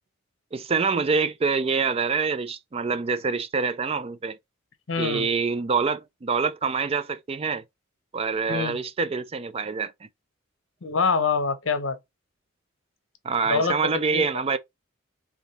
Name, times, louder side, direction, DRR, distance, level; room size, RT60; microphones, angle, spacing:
voice 1, 0.5-4.4 5.0-7.6 8.1-9.9 13.2-14.6, right 5 dB, 30° right, 0.4 m, -26 dB
voice 2, 4.9-5.3 8.5-8.8 10.8-12.0 13.4-13.8 14.1-14.3, left 4 dB, 70° left, 0.8 m, -25 dB
3.5 x 3.5 x 4.1 m
head